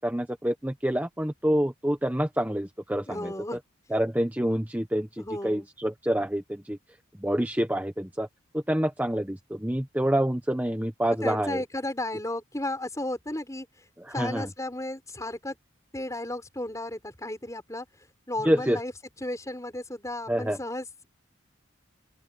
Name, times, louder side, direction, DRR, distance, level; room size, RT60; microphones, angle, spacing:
voice 1, 0.0-3.3 3.9-6.8 7.2-8.3 8.5-11.6 14.0-14.5 18.4-18.8 20.3-20.6, equal, 10° right, 1.1 m, -27 dB
voice 2, 3.1-3.6 5.2-5.7 11.2-13.7 14.1-15.6 15.9-17.9 18.3-18.9 19.2-20.9, left 1 dB, 15° left, 5.2 m, -34 dB
open air
head